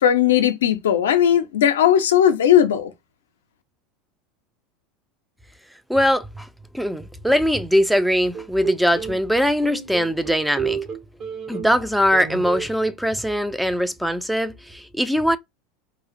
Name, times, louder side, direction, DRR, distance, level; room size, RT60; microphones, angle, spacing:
voice 1, 0.0-2.9, left 10 dB, 75° left, 0.4 m, -17 dB
voice 2, 5.9-6.5 6.7-10.8 11.5-15.4, equal, ahead, 0.3 m, -21 dB
sound 1, 8.3-9.2 9.6-11.8 12.1-12.7, right 7 dB, 45° right, 0.7 m, -30 dB
2.4 x 2.0 x 2.5 m
hypercardioid pair, 80°, 0 cm